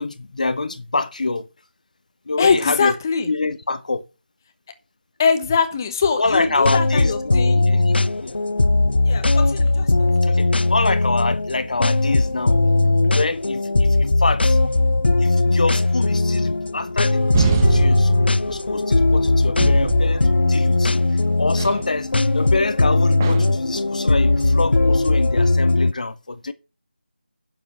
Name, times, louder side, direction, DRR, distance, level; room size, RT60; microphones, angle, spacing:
voice 1, 0.0-1.5 2.3-2.9 3.3-4.0 6.2-8.4 8.8-9.3 10.2-12.6 13.1-14.6 15.2-26.5, left 3 dB, 45° left, 0.9 m, -26 dB
voice 2, 2.4-3.3 5.2-7.6 9.0-10.1, left 5 dB, 20° left, 1.1 m, -22 dB
sound 1, 6.3-25.9, left 2 dB, 70° left, 0.7 m, -19 dB
sound 2, 17.3-19.0 19.6-20.8 21.6-21.9 23.2-23.7, right 4 dB, 15° right, 0.8 m, -25 dB
10.5 x 7.2 x 6.0 m
figure-of-eight pair, 170°, 6 cm